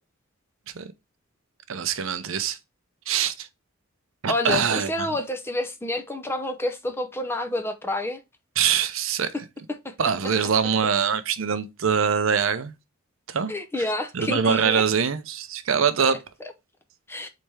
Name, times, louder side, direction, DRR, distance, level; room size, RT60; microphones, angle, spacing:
voice 1, 1.7-2.6 3.1-3.5 4.2-5.1 8.6-9.3 10.0-12.7 13.3-13.5 14.1-16.2, right 7 dB, 65° right, 0.6 m, -23 dB
voice 2, 4.3-8.2 9.8-9.9 13.5-14.8 17.1-17.3, left 1 dB, 10° left, 0.5 m, -28 dB
4.2 x 3.3 x 3.3 m
head